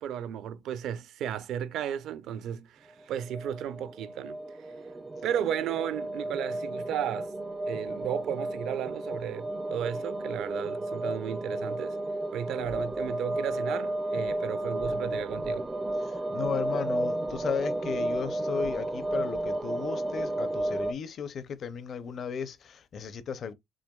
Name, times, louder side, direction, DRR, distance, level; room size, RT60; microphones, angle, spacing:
voice 1, 0.0-4.4 5.2-7.3 7.7-12.0 12.3-15.7, right 10 dB, 60° right, 0.6 m, -34 dB
sound 1, 3.0-20.9, right 1 dB, 10° right, 0.3 m, -33 dB
voice 2, 16.3-23.5, left 6 dB, 35° left, 0.6 m, -35 dB
6.3 x 3.4 x 2.3 m
cardioid pair, 175°, 0 cm